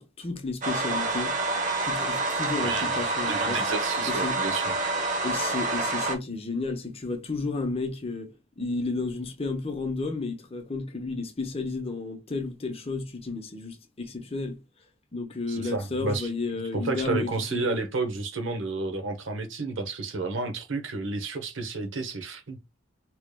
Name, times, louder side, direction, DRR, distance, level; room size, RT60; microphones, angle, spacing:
voice 1, 0.0-1.4 1.8-3.6 4.1-4.4 5.2-14.6 15.1-17.8, left 3 dB, 30° left, 0.8 m, -32 dB
sound 1, 0.6-6.2, right 3 dB, 40° right, 0.8 m, -27 dB
voice 2, 2.6-2.9 3.3-4.7 15.5-22.6, right 3 dB, 65° right, 0.9 m, -31 dB
4.9 x 3.0 x 2.2 m
head